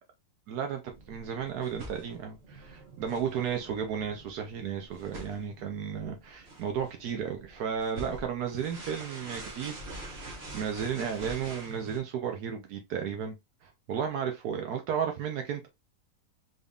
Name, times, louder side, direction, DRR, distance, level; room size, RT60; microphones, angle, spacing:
voice 1, 0.5-9.8 10.2-13.3 13.6-15.7, right 7 dB, 80° right, 1.3 m, -34 dB
sound 1, 0.9-12.0, right 2 dB, 45° right, 1.3 m, -45 dB
4.0 x 3.5 x 2.3 m
omnidirectional pair, 1.7 m